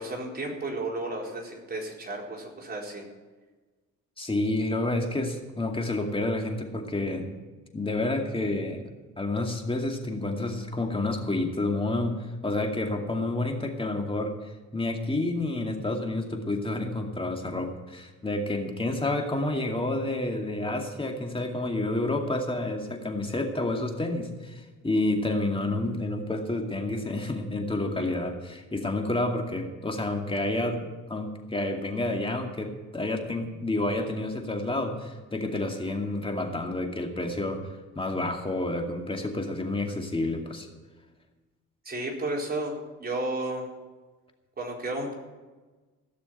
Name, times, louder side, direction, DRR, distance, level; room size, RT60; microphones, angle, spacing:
voice 1, 0.0-3.0 28.0-28.1 41.8-42.7 43.0-43.7 44.6-45.1, right 2 dB, 30° right, -1 dB, 4.4 m, -33 dB
voice 2, 4.2-7.3 7.7-8.8 9.2-37.6 37.9-40.7, left 2 dB, 20° left, 2 dB, 2.3 m, -29 dB
16.5 x 6.7 x 9.2 m, 1.3 s
cardioid pair, 90°, 30 cm